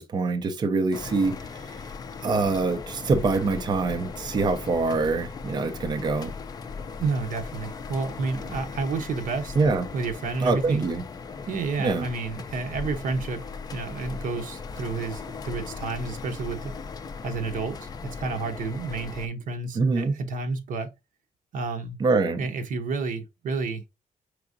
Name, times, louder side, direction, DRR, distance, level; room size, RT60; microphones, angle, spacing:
voice 1, 0.0-1.8 2.2-6.3 9.6-9.9 10.4-11.0 11.8-12.0 19.8-20.1 22.0-22.5, right 3 dB, 30° right, 0.5 m, -25 dB
sound 1, 0.9-19.3, left 5 dB, 30° left, 0.4 m, -38 dB
voice 2, 7.0-9.6 9.9-10.8 11.5-13.4 13.7-16.8 17.2-20.9 21.5-22.0 22.4-23.9, right 4 dB, 75° right, 0.8 m, -30 dB
4.7 x 3.5 x 2.5 m
wide cardioid pair, 180°, 14 cm